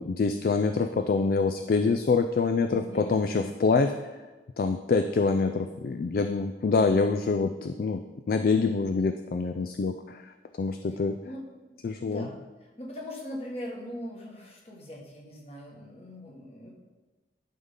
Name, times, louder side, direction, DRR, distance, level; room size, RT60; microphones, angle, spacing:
voice 1, 0.0-4.1 4.6-8.0 8.3-11.2 11.8-12.3, left 4 dB, 50° left, 7 dB, 0.3 m, -26 dB
voice 2, 2.7-3.6 11.2-12.4 12.8-16.7, left 1 dB, 35° left, -1 dB, 1.6 m, -41 dB
11.0 x 5.5 x 3.8 m, 1.2 s
head